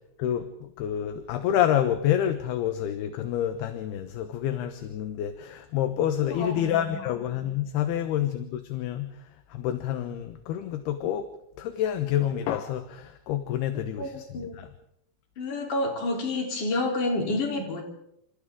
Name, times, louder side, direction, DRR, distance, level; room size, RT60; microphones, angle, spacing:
voice 1, 0.2-9.1 9.5-11.3 11.6-14.7, left 11 dB, 70° left, 8 dB, 2.9 m, -28 dB
voice 2, 6.2-7.0 14.0-14.6 15.4-17.8, left 2 dB, 45° left, 1 dB, 4.9 m, -29 dB
29.0 x 27.0 x 3.8 m, 0.77 s
omnidirectional pair, 5.0 m